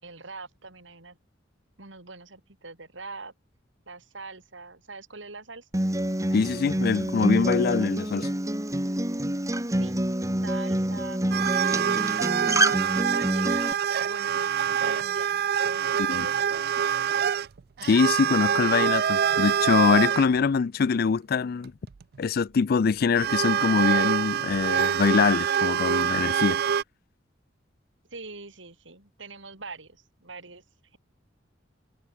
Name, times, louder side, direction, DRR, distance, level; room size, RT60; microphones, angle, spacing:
voice 1, 0.0-1.2 1.8-3.3 3.9-5.7 9.7-10.1 10.4-12.3 13.0-17.2 28.1-30.6, right 3 dB, 75° right, 4.5 m, -43 dB
Acoustic guitar, 5.7-13.7, right 1 dB, 15° right, 1.8 m, -27 dB
voice 2, 6.3-8.3 16.1-16.3 17.8-21.7 22.2-26.6, left 5 dB, 55° left, 0.4 m, -23 dB
sound 1, 11.3-20.3 21.6-22.2 23.1-26.8, right 8 dB, 55° right, 0.4 m, -25 dB
head